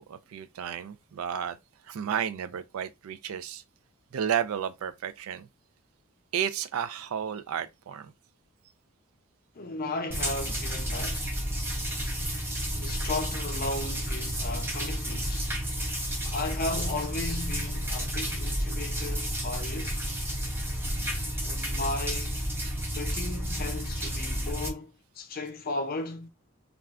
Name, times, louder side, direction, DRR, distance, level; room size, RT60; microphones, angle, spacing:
voice 1, 0.0-1.6 1.9-3.6 4.1-5.5 6.3-8.1 22.6-22.7, right 8 dB, 75° right, 0.4 m, -32 dB
voice 2, 9.5-11.4 12.7-15.5 16.3-20.0 21.4-22.4 22.9-26.3, left 2 dB, 40° left, 0.6 m, -35 dB
sound 1, 10.1-24.7, equal, 10° right, 0.5 m, -31 dB
2.4 x 2.1 x 3.5 m
head